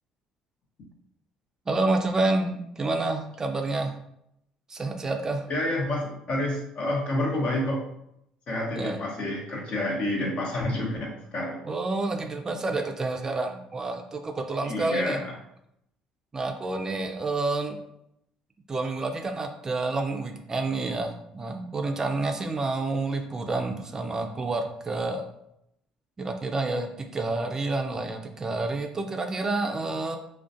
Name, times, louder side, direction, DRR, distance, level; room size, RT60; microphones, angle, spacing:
voice 1, 1.7-3.9 4.7-5.5 8.8-9.0 11.6-15.2 16.3-17.8 18.7-25.2 26.2-30.2, right 2 dB, 30° right, 4 dB, 0.3 m, -29 dB
voice 2, 5.5-7.8 8.5-11.6 14.6-15.3, left 1 dB, 55° left, -2 dB, 0.8 m, -29 dB
2.4 x 2.1 x 2.5 m, 0.77 s
supercardioid pair, 80°, 2 cm